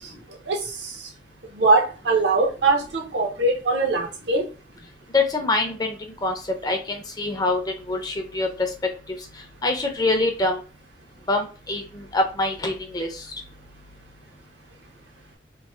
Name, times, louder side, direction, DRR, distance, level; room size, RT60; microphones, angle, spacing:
voice 1, 0.5-0.9 1.5-4.5, right 3 dB, 75° right, 1 dB, 0.8 m, -21 dB
voice 2, 5.1-6.0 6.2-6.3 6.6-7.6 7.9-8.5 9.6-10.6 11.3-13.2, left 2 dB, 20° left, 4 dB, 0.5 m, -24 dB
3.0 x 2.0 x 2.9 m, 0.35 s
head